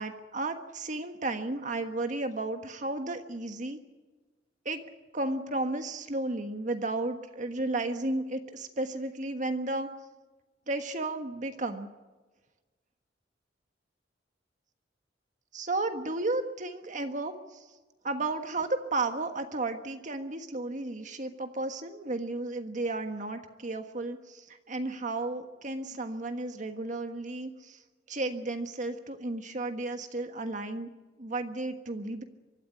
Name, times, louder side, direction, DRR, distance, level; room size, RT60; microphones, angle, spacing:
voice 1, 0.0-3.8 4.6-4.8 5.1-9.9 10.7-11.9 15.5-17.6 18.0-27.8 28.1-30.9 31.2-32.2, right 2 dB, 45° right, 7 dB, 1.5 m, -33 dB
24.5 x 13.5 x 9.8 m, 1.3 s
head